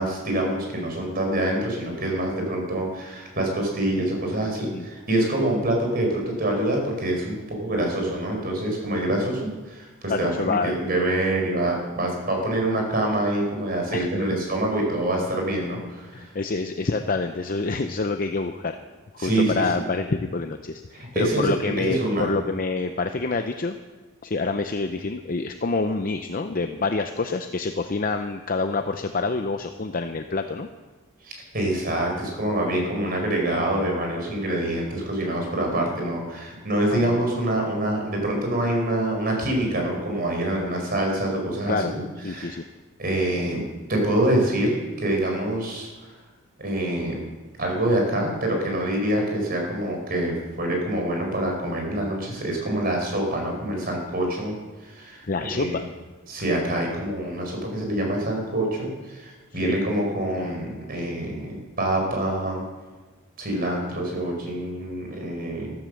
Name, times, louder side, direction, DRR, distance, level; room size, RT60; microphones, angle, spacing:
voice 1, 0.0-16.3 19.2-19.7 20.9-22.3 31.2-42.0 42.3-42.6 43.0-43.6 43.9-46.1 46.6-47.2 47.6-54.6 54.8-55.2 55.5-55.8 56.3-62.6 63.4-65.7, right 1 dB, 45° right, 1 dB, 4.7 m, -26 dB
voice 2, 10.1-10.8 13.9-14.3 16.1-18.8 19.2-23.8 24.2-30.7 35.6-35.8 36.9-37.2 41.7-41.9 42.2-42.6 55.3-55.9 59.6-59.8, left 3 dB, 40° left, 7 dB, 0.6 m, -27 dB
14.5 x 13.5 x 6.5 m, 1.3 s
head